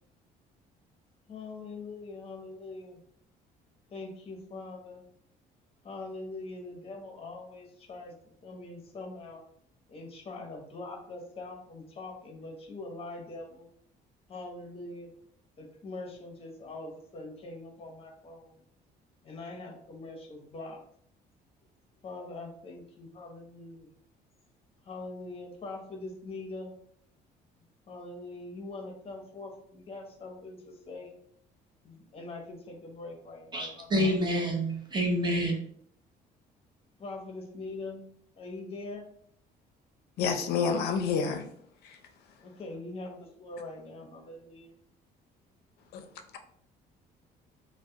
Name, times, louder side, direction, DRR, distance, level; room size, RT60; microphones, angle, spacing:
voice 1, 1.3-3.0 3.9-5.0 5.8-8.1 8.4-9.4 9.9-13.7 14.3-15.1 15.6-18.6 19.2-20.8 22.0-23.9 24.8-26.7 27.9-31.1 31.8-33.9 37.0-38.0 38.4-39.0 42.4-44.7, left 2 dB, 35° left, 2 dB, 0.7 m, -43 dB
voice 2, 33.5-35.6, equal, 25° right, 0 dB, 0.7 m, -28 dB
voice 3, 40.2-41.4 41.8-42.0 45.9-46.1, left 6 dB, 70° left, 6 dB, 0.4 m, -28 dB
2.3 x 2.0 x 2.7 m, 0.65 s
cardioid pair, 110°, 17 cm